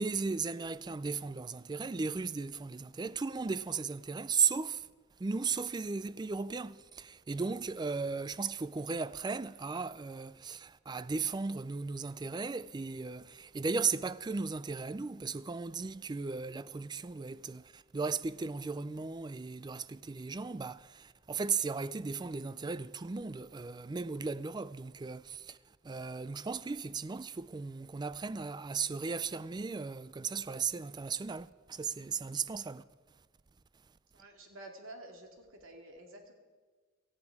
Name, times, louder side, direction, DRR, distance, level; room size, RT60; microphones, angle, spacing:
voice 1, 0.0-4.9 5.2-25.6 25.8-32.8, right 5 dB, 20° right, 0.3 m, -36 dB
voice 2, 34.1-36.3, right 1 dB, 85° right, 2.3 m, -50 dB
17.5 x 14.5 x 4.8 m
head